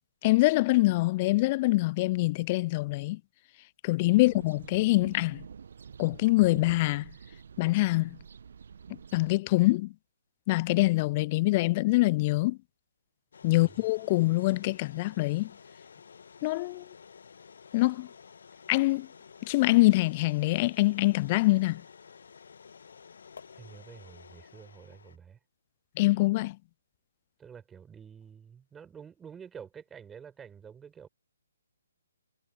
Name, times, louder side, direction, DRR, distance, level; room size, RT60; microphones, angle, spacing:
voice 1, 0.2-3.2 3.8-5.4 6.0-7.1 7.6-8.2 9.1-9.9 10.5-12.6 13.4-15.5 16.4-16.9 17.7-18.1 18.7-19.1 19.5-21.8 26.0-26.6, left 20 dB, 30° left, 0.4 m, -24 dB
sound 1, 4.2-9.4, right 6 dB, 55° right, 1.3 m, -47 dB
sound 2, 13.3-25.2, left 6 dB, 60° left, 1.6 m, -52 dB
voice 2, 13.5-13.8 23.6-25.4 27.4-31.1, right 7 dB, 10° right, 5.5 m, -49 dB
figure-of-eight pair, 135°, 0 cm